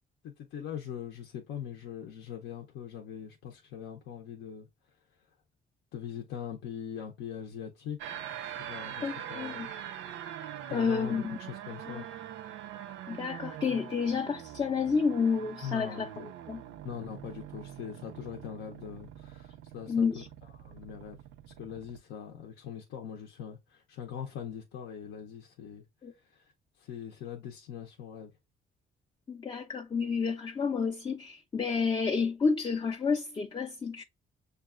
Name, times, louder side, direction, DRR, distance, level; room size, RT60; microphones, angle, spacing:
voice 1, 0.2-4.7 5.9-8.2 8.5-9.7 10.7-12.0 15.6-16.3 16.8-20.2 20.6-21.2 21.5-25.8 26.3-26.5 26.8-28.3, left 8 dB, 80° left, 0.6 m, -42 dB
sound 1, 8.0-22.0, right 10 dB, 75° right, 0.4 m, -43 dB
voice 2, 9.0-9.7 10.7-11.4 11.9-12.0 13.1-16.6 19.9-20.3 26.0-26.1 29.3-34.0, left 5 dB, 25° left, 0.4 m, -30 dB
6.5 x 2.3 x 2.4 m
cardioid pair, 90°, 20 cm